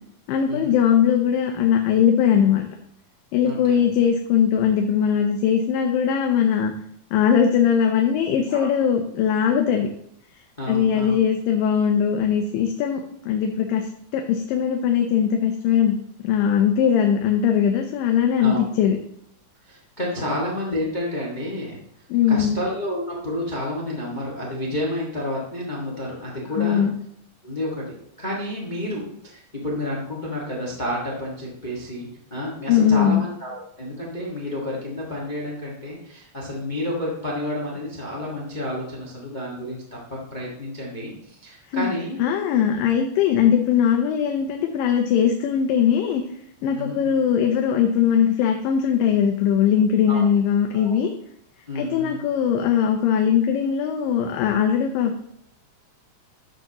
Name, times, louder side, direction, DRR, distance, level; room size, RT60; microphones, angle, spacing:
voice 1, 0.3-2.7 3.3-6.7 7.1-9.9 10.7-13.9 14.1-16.0 16.2-19.0 20.3-20.4 22.1-22.6 26.6-26.9 32.7-33.2 41.7-41.9 42.2-46.2 46.6-51.1 51.8-55.3, left 8 dB, 85° left, 4 dB, 2.4 m, -20 dB
voice 2, 3.4-3.8 8.5-8.7 10.6-11.2 18.4-18.6 19.6-21.8 22.3-26.9 27.4-42.2 46.7-47.1 50.1-50.2 50.7-51.0 51.7-52.2, left 1 dB, 25° left, -3 dB, 1.0 m, -30 dB
11.5 x 7.2 x 2.9 m, 0.71 s
omnidirectional pair, 4.0 m